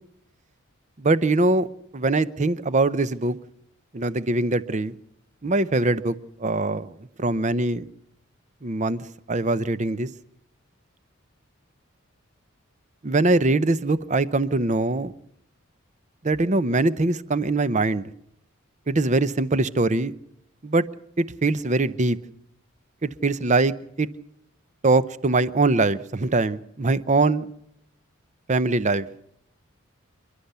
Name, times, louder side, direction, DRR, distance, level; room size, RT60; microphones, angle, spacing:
voice 1, 1.0-1.7 1.9-3.4 3.9-4.9 5.4-6.9 7.2-7.9 8.6-9.0 9.3-10.1 13.0-15.1 16.2-18.0 18.9-20.1 20.6-20.8 21.2-22.2 23.0-24.1 24.8-27.5 28.5-29.1, right 2 dB, 35° right, 16 dB, 0.7 m, -22 dB
28.5 x 11.5 x 8.1 m, 0.79 s
head